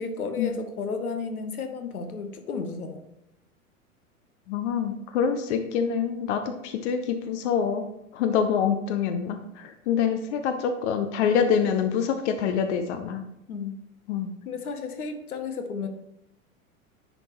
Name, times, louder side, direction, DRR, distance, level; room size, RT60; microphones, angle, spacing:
voice 1, 0.0-3.0 13.5-13.8 14.4-15.9, left 4 dB, 75° left, 7 dB, 0.9 m, -33 dB
voice 2, 4.5-7.9 8.1-13.2 14.1-14.3, left 7 dB, 50° left, 8 dB, 0.7 m, -26 dB
10.0 x 3.5 x 2.9 m, 0.84 s
figure-of-eight pair, 95°, 44 cm